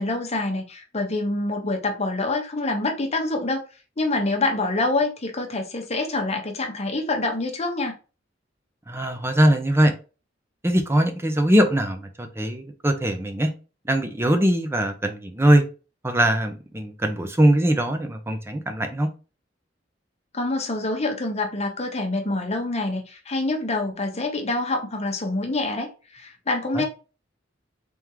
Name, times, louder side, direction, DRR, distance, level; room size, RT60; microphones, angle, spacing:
voice 1, 0.0-3.6 4.0-7.9 20.3-26.8, left 2 dB, 35° left, 3 dB, 1.0 m, -26 dB
voice 2, 8.9-9.9 10.6-12.1 12.4-13.5 13.8-15.6 16.0-19.1 26.7-26.8, right 1 dB, 15° right, 6 dB, 0.7 m, -21 dB
3.5 x 3.5 x 3.0 m, 0.33 s
head